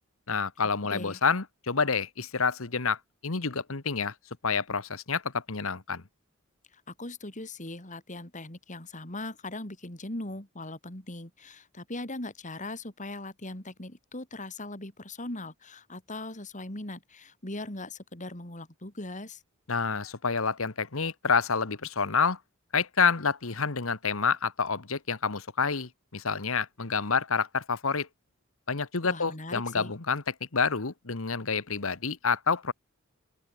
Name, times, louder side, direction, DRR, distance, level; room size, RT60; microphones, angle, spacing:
voice 1, 0.3-4.1 4.4-6.0 19.7-22.4 22.7-28.1 28.7-30.2 30.5-32.7, left 5 dB, 70° left, 1.4 m, -28 dB
voice 2, 0.9-1.2 6.7-19.4 29.0-29.9, left 2 dB, 35° left, 3.7 m, -40 dB
open air
head